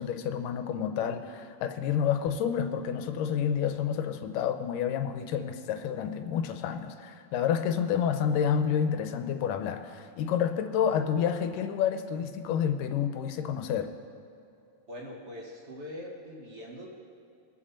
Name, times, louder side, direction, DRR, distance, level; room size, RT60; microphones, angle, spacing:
voice 1, 0.0-13.9, left 8 dB, 90° left, 7 dB, 2.3 m, -29 dB
voice 2, 14.9-16.9, left 1 dB, 30° right, -2 dB, 1.3 m, -42 dB
22.5 x 7.6 x 4.3 m, 2.6 s
omnidirectional pair, 3.8 m